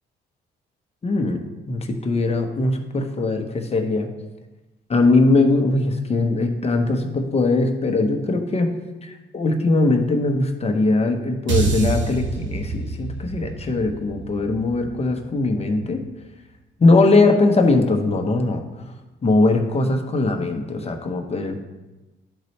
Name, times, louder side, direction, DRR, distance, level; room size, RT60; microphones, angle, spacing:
voice 1, 1.0-1.4 1.7-4.1 4.9-16.0 16.8-18.6 19.2-21.6, left 2 dB, 30° left, 4 dB, 1.0 m, -20 dB
sound 1, 11.5-15.8, right 4 dB, 65° right, 1.3 m, -27 dB
12.0 x 4.0 x 3.3 m, 1.1 s
cardioid pair, 90°, 20 cm